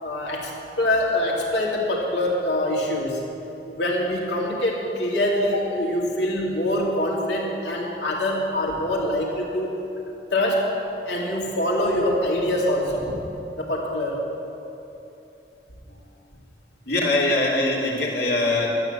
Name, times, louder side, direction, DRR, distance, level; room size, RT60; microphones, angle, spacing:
voice 1, 0.0-3.2 3.7-9.7 10.3-10.7 11.1-13.1 13.6-14.3, left 1 dB, 85° left, -2 dB, 2.6 m, -24 dB
voice 2, 16.9-18.7, left 2 dB, 65° left, -3 dB, 2.6 m, -22 dB
12.5 x 9.5 x 7.9 m, 2.9 s
head